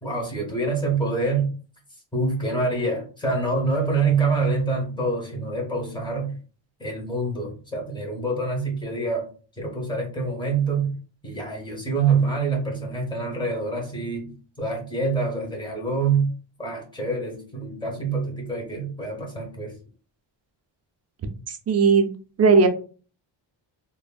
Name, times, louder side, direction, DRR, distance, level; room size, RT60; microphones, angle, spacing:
voice 1, 0.0-1.5 2.1-6.4 6.8-9.3 9.6-10.9 11.2-16.3 16.6-19.7, right 3 dB, 10° left, 0 dB, 0.9 m, -26 dB
voice 2, 21.5-22.1 22.4-22.7, right 4 dB, 35° right, 4 dB, 0.4 m, -17 dB
3.3 x 2.1 x 2.3 m, 0.38 s
wide cardioid pair, 145°, 46 cm